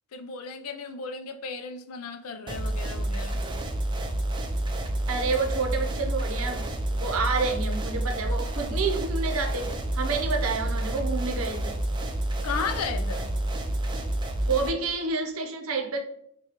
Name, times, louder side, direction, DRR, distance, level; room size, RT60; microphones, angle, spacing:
voice 1, 0.1-3.4 12.4-13.3, left 5 dB, 85° left, 8 dB, 0.4 m, -34 dB
sound 1, 2.5-14.7, right 1 dB, 20° right, 0.4 m, -29 dB
voice 2, 5.1-6.7 7.0-11.8 14.4-16.0, right 4 dB, 80° right, 3 dB, 0.7 m, -29 dB
5.4 x 2.3 x 2.9 m, 0.70 s
head